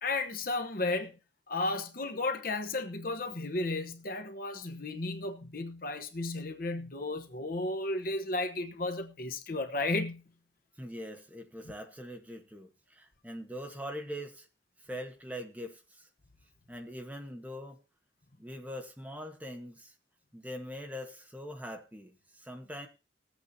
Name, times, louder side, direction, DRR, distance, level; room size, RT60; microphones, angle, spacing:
voice 1, 0.0-1.2 1.5-10.2, left 2 dB, 55° left, 1.1 m, -33 dB
voice 2, 10.8-14.5 14.8-16.1 16.7-17.8 18.4-19.9 20.3-22.9, equal, 10° right, 1.4 m, -42 dB
20.0 x 8.3 x 2.8 m
head